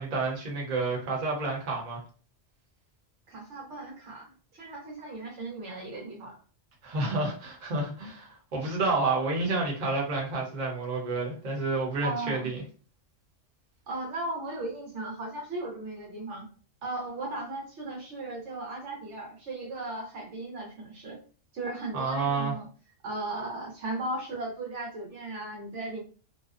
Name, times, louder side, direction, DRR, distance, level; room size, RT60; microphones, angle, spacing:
voice 1, 0.0-2.0 6.8-12.6 21.9-22.5, right 3 dB, 45° right, -3 dB, 0.9 m, -29 dB
voice 2, 3.3-6.4 12.0-12.5 13.9-16.5 16.8-21.2 21.5-22.7 23.0-26.0, right 2 dB, 85° right, 0 dB, 1.1 m, -36 dB
2.6 x 2.1 x 2.4 m, 0.39 s
omnidirectional pair, 1.2 m